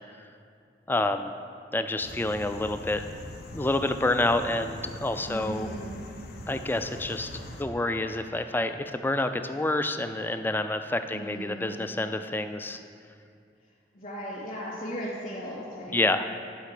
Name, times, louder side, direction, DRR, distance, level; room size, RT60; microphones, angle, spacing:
voice 1, 0.9-1.3 1.7-3.0 3.5-5.7 6.5-12.8 15.9-16.4, left 2 dB, 10° left, 9 dB, 0.4 m, -28 dB
sound 1, 2.0-7.6, left 1 dB, 65° left, 0.9 m, -42 dB
voice 2, 5.3-5.9 11.1-11.6 13.9-16.0, equal, 45° left, -13 dB, 2.8 m, -36 dB
11.5 x 4.9 x 6.6 m, 2.4 s
head